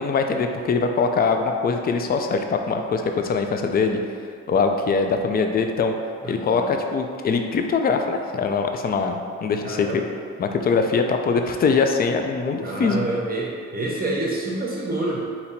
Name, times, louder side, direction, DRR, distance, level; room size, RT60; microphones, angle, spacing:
voice 1, 0.0-4.0 4.5-5.9 6.2-10.0 10.4-13.0, left 4 dB, 30° left, 5 dB, 0.4 m, -22 dB
voice 2, 6.2-6.7 9.6-10.0 12.6-15.2, right 2 dB, 30° right, -4 dB, 0.7 m, -27 dB
3.9 x 2.9 x 4.3 m, 2.2 s
cardioid pair, 90°, 30 cm